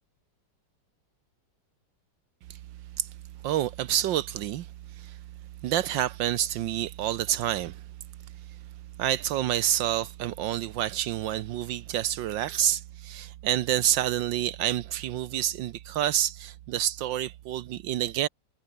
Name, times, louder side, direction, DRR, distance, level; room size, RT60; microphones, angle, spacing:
voice 1, 3.4-4.7 5.0-5.2 5.6-7.8 9.0-18.3, right 12 dB, 80° right, 1.5 m, -28 dB
omnidirectional pair, 2.0 m